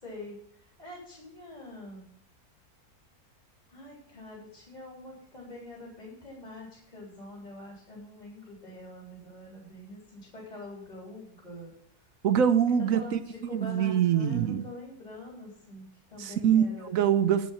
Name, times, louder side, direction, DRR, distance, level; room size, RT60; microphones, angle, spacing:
voice 1, 0.0-2.1 3.7-11.7 12.9-17.0, left 1 dB, 25° left, -4 dB, 3.9 m, -45 dB
voice 2, 12.2-13.2 13.5-14.6 16.2-17.5, right 8 dB, 65° right, 11 dB, 1.1 m, -24 dB
10.0 x 5.9 x 8.5 m, 0.69 s
omnidirectional pair, 1.6 m